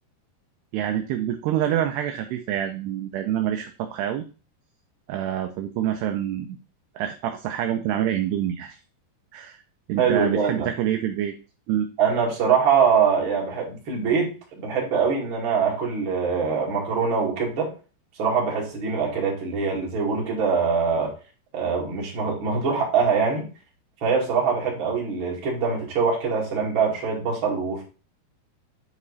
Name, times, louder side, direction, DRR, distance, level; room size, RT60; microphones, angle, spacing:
voice 1, 0.7-4.2 5.1-6.6 7.0-8.8 9.3-9.6 9.9-11.3 11.7-11.9, right 11 dB, 80° right, 6 dB, 2.4 m, -26 dB
voice 2, 10.0-10.7 12.0-17.7 18.2-21.1 21.5-23.5 24.0-27.8, right 5 dB, 35° right, -2 dB, 2.3 m, -23 dB
8.8 x 5.2 x 4.1 m, 0.35 s
omnidirectional pair, 5.3 m